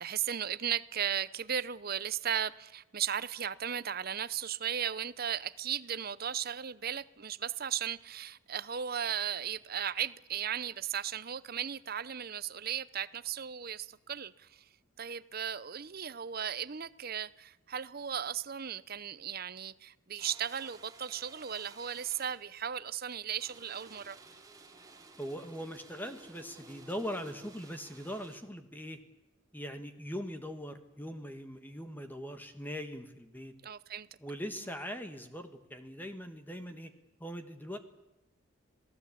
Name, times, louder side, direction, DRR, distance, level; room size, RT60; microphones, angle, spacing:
voice 1, 0.0-14.6 15.0-24.2 33.6-34.1, right 9 dB, 45° right, 0.7 m, -36 dB
sound 1, 20.2-22.5 23.4-28.4, right 3 dB, 15° right, 2.5 m, -54 dB
voice 2, 25.2-29.0 29.5-33.5 34.2-36.9 37.2-37.8, equal, 10° left, 1.4 m, -41 dB
26.5 x 17.5 x 8.5 m
head